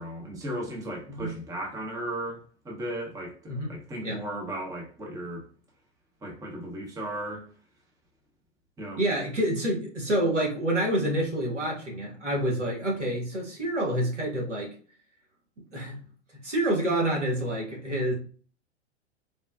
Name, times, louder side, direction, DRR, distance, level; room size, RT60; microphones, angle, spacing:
voice 1, 0.0-5.5 6.2-7.5 8.8-9.0, right 1 dB, 10° right, 0.7 m, -36 dB
voice 2, 9.0-14.7 15.7-16.0 16.4-18.1, right 1 dB, 90° right, 1.2 m, -27 dB
3.5 x 2.1 x 2.2 m
figure-of-eight pair, 100°, 35 cm